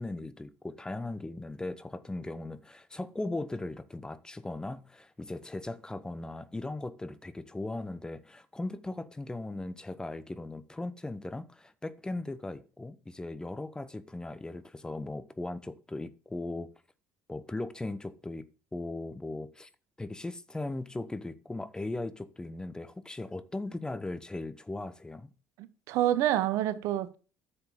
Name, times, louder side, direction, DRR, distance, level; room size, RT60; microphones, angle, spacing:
voice 1, 0.0-16.7 17.3-18.5 18.7-19.7 20.0-25.3, left 2 dB, 15° left, 0.8 m, -38 dB
voice 2, 25.6-27.2, right 12 dB, 65° right, 0.7 m, -28 dB
10.5 x 7.0 x 3.8 m
hypercardioid pair, 55°, 6 cm